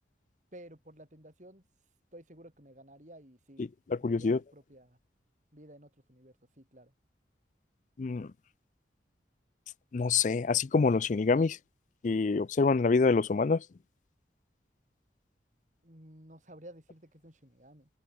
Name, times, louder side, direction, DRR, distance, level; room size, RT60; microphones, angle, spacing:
voice 1, 0.5-1.6 2.1-3.7 4.0-5.0 5.5-6.9 15.8-17.9, right 1 dB, 45° right, 7.4 m, -53 dB
voice 2, 3.6-4.4 8.0-8.3 9.9-11.6 12.0-13.6, left 4 dB, 45° left, 0.4 m, -26 dB
open air
head